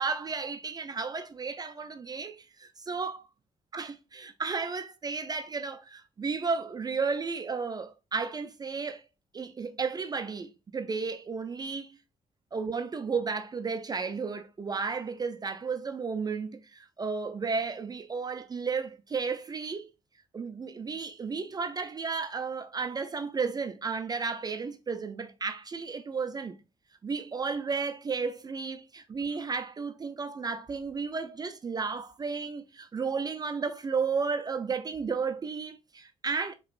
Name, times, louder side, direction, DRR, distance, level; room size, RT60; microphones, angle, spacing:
voice 1, 0.0-3.2 3.7-9.0 9.3-12.0 12.5-19.9 20.3-26.6 27.0-36.6, right 5 dB, 30° right, 0.4 m, -33 dB
4.6 x 3.0 x 2.5 m
cardioid pair, 90°, 13 cm